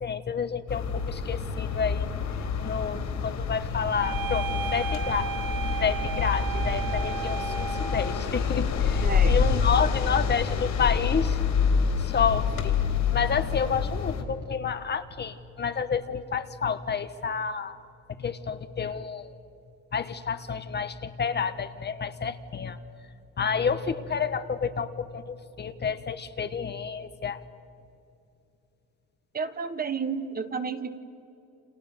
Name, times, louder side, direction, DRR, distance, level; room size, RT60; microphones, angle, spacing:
voice 1, 0.0-2.1 2.6-5.3 5.7-11.4 12.0-12.8 13.1-17.8 18.2-19.4 19.9-22.8 23.4-27.4, left 6 dB, 30° left, 10 dB, 1.3 m, -29 dB
sound 1, 0.7-14.2, left 6 dB, 60° left, 3.8 m, -27 dB
sound 2, 4.0-8.2, right 6 dB, 65° right, 2.1 m, -34 dB
voice 2, 9.0-9.4 29.3-31.0, right 5 dB, 25° right, 10 dB, 1.5 m, -31 dB
29.5 x 27.0 x 6.9 m, 2.7 s
cardioid pair, 125°, 33 cm